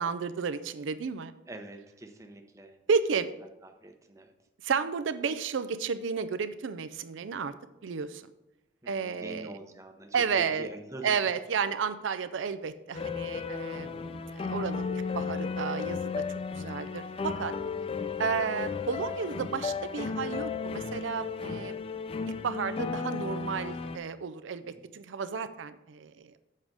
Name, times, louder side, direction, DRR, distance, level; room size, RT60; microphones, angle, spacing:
voice 1, 0.0-1.3 2.9-3.3 4.6-7.5 7.8-8.3 8.9-9.5 10.1-10.7 11.0-16.2 16.5-17.5 18.2-21.7 22.4-26.4, right 6 dB, 80° right, 12 dB, 0.4 m, -32 dB
voice 2, 1.5-2.8 3.6-4.3 7.3-7.6 8.8-11.2 17.9-18.0 24.6-24.9, right 1 dB, 15° right, 5 dB, 0.7 m, -45 dB
sound 1, 12.9-24.0, left 5 dB, 30° left, 0.3 m, -34 dB
7.4 x 5.0 x 6.1 m, 0.95 s
head